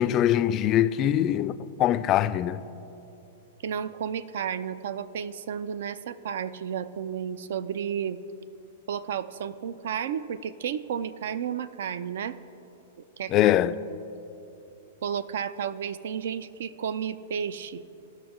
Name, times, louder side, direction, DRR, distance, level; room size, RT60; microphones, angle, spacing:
voice 1, 0.0-2.6 13.3-13.8, left 12 dB, 35° left, 0.3 m, -23 dB
voice 2, 3.6-8.2 8.9-12.4 13.2-13.3 15.0-17.9, right 8 dB, 70° right, 0.4 m, -32 dB
16.5 x 6.4 x 3.1 m
hypercardioid pair, 125°, 0 cm